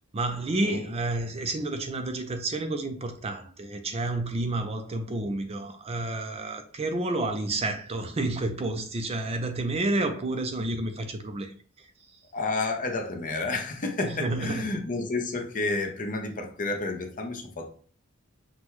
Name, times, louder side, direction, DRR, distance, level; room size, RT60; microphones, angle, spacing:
voice 1, 0.1-11.5 14.0-14.8, right 2 dB, 30° right, 0.4 m, -30 dB
voice 2, 12.3-17.7, left 3 dB, 40° left, 0.7 m, -30 dB
6.0 x 2.3 x 3.0 m
head